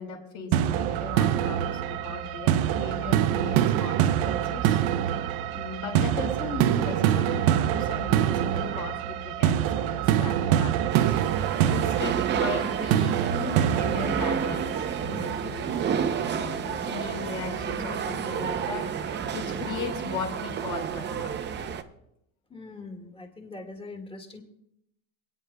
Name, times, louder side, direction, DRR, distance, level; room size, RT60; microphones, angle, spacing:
voice 1, 0.0-4.8 5.5-15.7 16.0-21.3, left 5 dB, 45° left, -1 dB, 4.2 m, -37 dB
sound 1, 0.5-15.5, right 11 dB, 80° right, 0.8 m, -25 dB
sound 2, 10.9-21.8, right 7 dB, 25° right, 0.7 m, -30 dB
voice 2, 22.5-24.4, left 3 dB, 15° left, 3 dB, 1.9 m, -42 dB
28.5 x 9.5 x 2.3 m, 0.79 s
cardioid pair, 150°, 40 cm